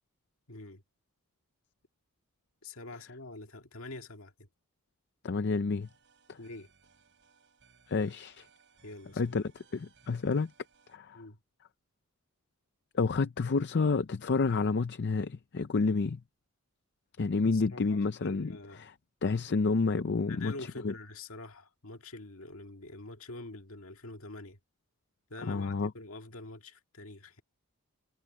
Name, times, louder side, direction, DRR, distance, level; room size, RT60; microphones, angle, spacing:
voice 1, 0.5-0.8 2.6-4.5 6.4-6.7 8.8-9.4 11.1-11.4 17.4-18.9 20.3-24.6 25.3-27.4, left 2 dB, 65° left, 2.0 m, -46 dB
voice 2, 5.2-5.9 6.3-6.4 7.9-8.5 9.2-10.5 10.9-11.2 12.9-16.2 17.2-18.5 18.8-18.9 19.2-20.5 20.8-20.9 25.4-25.9, left 4 dB, 50° left, 0.5 m, -29 dB
sound 1, 5.8-11.0, right 5 dB, 55° right, 6.8 m, -65 dB
head